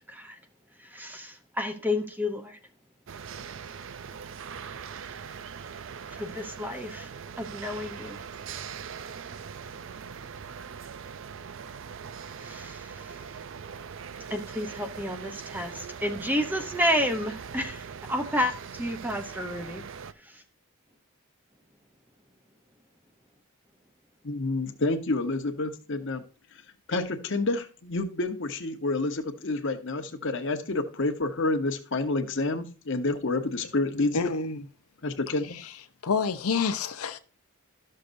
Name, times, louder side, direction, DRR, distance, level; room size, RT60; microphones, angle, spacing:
voice 1, 0.1-0.4 0.8-2.6 6.1-7.1 7.4-8.2 12.4-13.2 14.3-19.8 20.2-20.4, left 1 dB, 10° right, 0.7 m, -31 dB
sound 1, 3.1-20.1, right 6 dB, 60° right, 0.4 m, -41 dB
voice 2, 24.2-26.2 26.9-34.3 35.0-35.6, left 2 dB, 60° left, 1.0 m, -29 dB
voice 3, 34.1-34.7 35.5-35.7 36.0-37.2, left 5 dB, 90° left, 0.7 m, -28 dB
12.5 x 6.5 x 2.6 m
head